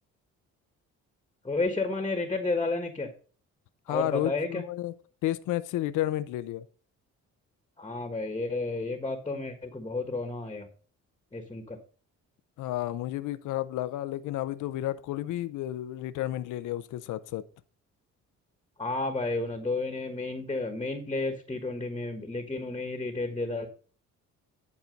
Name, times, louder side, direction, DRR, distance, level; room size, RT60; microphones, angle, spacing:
voice 1, 1.4-3.1 3.9-4.6 7.8-10.7 11.3-11.8 18.8-23.7, left 3 dB, 15° left, 1.4 m, -31 dB
voice 2, 3.9-4.9 5.2-6.6 12.6-17.4, left 14 dB, 85° left, 0.7 m, -31 dB
11.0 x 4.3 x 5.2 m
cardioid pair, 90°, 30 cm